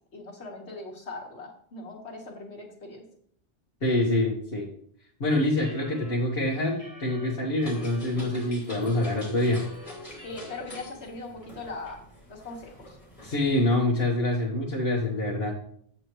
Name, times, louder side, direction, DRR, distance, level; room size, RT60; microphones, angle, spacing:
voice 1, 0.1-3.0 10.2-12.0 12.3-13.0, left 2 dB, 85° left, 0 dB, 1.9 m, -40 dB
voice 2, 3.8-4.7 5.2-9.6 13.2-15.5, left 1 dB, 60° left, -3 dB, 1.6 m, -26 dB
sound 1, 5.6-8.0 8.6-8.7 9.0-10.7 11.0-11.1 11.4-11.9, left 1 dB, 35° right, 2.1 m, -49 dB
sound 2, 7.6-13.8, left 1 dB, 30° left, 2.5 m, -45 dB
8.3 x 7.8 x 3.1 m, 0.62 s
omnidirectional pair, 1.1 m